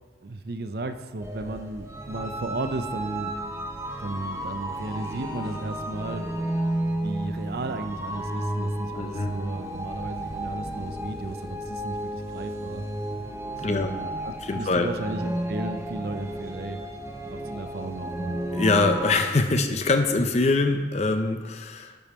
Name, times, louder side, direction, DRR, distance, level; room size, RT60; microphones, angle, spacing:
voice 1, 0.2-3.3 4.0-6.5 6.9-12.8 13.7-16.8 17.3-18.4, right 2 dB, 60° right, 9 dB, 0.6 m, -34 dB
sound 1, 1.2-19.1, right 1 dB, 15° right, 0.8 m, -33 dB
voice 2, 9.0-9.3 13.6-13.9 14.5-14.9 18.5-22.0, left 3 dB, 40° left, 6 dB, 0.6 m, -23 dB
11.0 x 5.2 x 4.3 m, 1.3 s
head